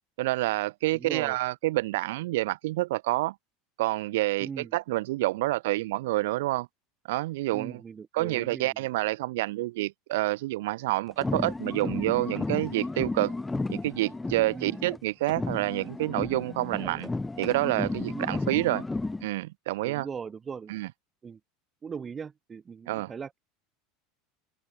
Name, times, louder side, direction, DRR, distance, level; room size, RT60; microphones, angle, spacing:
voice 1, 0.2-3.3 3.8-6.7 7.1-7.8 8.1-13.3 13.7-17.1 17.4-18.8 19.2-20.1 20.7-20.9 22.9-23.1, right 18 dB, 85° right, 0.6 m, -28 dB
voice 2, 0.9-1.4 4.4-4.7 7.5-8.9 14.5-14.8 18.1-18.3 19.8-20.7 21.2-21.4 21.8-23.4, right 6 dB, 15° right, 1.7 m, -39 dB
sound 1, 11.1-15.0 15.3-19.3, left 2 dB, 5° left, 2.5 m, -33 dB
open air
supercardioid pair, 165°, 0 cm